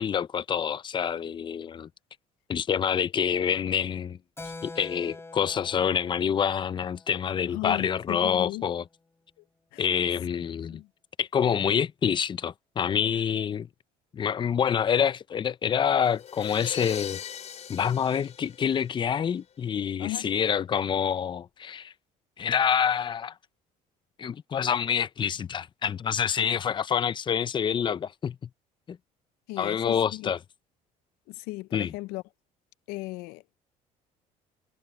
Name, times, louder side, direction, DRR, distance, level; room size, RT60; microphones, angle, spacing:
voice 1, 0.0-1.9 2.5-4.2 4.6-8.8 9.8-10.8 11.2-13.7 14.1-17.2 17.7-21.9 22.4-23.3 24.2-28.4 28.9-29.0 29.6-30.4 31.7-31.9, left 8 dB, 30° left, 0.6 m, -27 dB
Keyboard (musical), 4.4-8.5, left 3 dB, 15° left, 5.3 m, -46 dB
voice 2, 7.5-8.6 9.7-9.8 10.7-10.9 20.0-20.3 29.5-30.3 31.3-32.2 32.9-33.4, left 21 dB, 85° left, 0.5 m, -36 dB
sound 1, 16.0-19.3, left 8 dB, 45° left, 4.4 m, -40 dB
cardioid pair, 100°, 15 cm